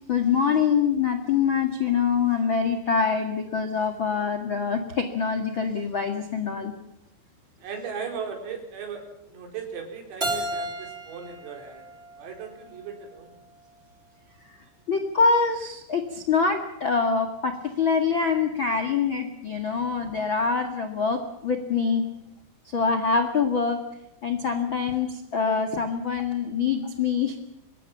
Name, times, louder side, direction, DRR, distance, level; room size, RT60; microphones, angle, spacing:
voice 1, 0.1-6.7 14.5-14.6 14.9-22.0 22.7-23.8 24.2-27.4, left 5 dB, 85° left, 7 dB, 1.1 m, -25 dB
voice 2, 7.6-11.9 12.2-13.4, right 6 dB, 85° right, 4 dB, 6.9 m, -37 dB
Keyboard (musical), 10.2-13.0, right 1 dB, 15° right, 3.1 m, -34 dB
25.0 x 21.0 x 7.4 m, 0.87 s
omnidirectional pair, 5.8 m